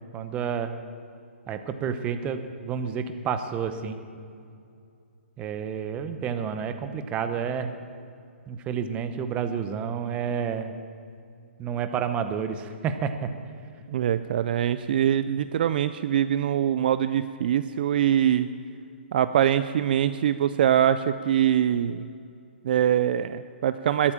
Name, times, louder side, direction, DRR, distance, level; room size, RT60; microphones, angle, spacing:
voice 1, 0.1-0.8 1.5-4.0 5.4-7.8 8.5-10.7 11.6-13.3, right 7 dB, 15° right, 9 dB, 0.8 m, -30 dB
voice 2, 13.9-18.5 19.1-22.1 22.6-24.1, right 10 dB, 45° right, 12 dB, 0.4 m, -23 dB
21.0 x 8.6 x 7.3 m, 2.5 s
hypercardioid pair, 155°, 7 cm